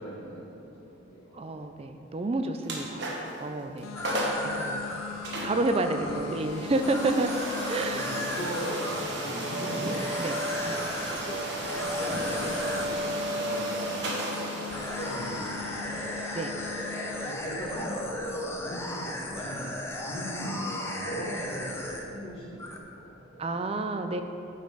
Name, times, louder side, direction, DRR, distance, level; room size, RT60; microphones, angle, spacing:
voice 1, 0.0-1.4 6.1-6.5 7.7-10.0 10.7-16.2 16.9-19.6 20.0-23.5, equal, 65° left, -11 dB, 1.9 m, -39 dB
voice 2, 1.3-3.9 4.4-5.0 5.4-8.1 10.2-10.4 16.3-16.5 23.4-24.2, right 2 dB, 30° right, 7 dB, 0.4 m, -30 dB
sound 1, 2.6-3.4 3.8-4.5 5.2-18.0, right 1 dB, 55° right, 1.3 m, -34 dB
sound 2, 3.8-17.3, left 11 dB, 85° left, 0.4 m, -42 dB
sound 3, 3.9-9.0 9.9-11.2 11.6-13.0 14.7-22.2 22.6-22.8, left 1 dB, 10° left, 0.6 m, -36 dB
9.0 x 5.3 x 5.5 m, 2.9 s
head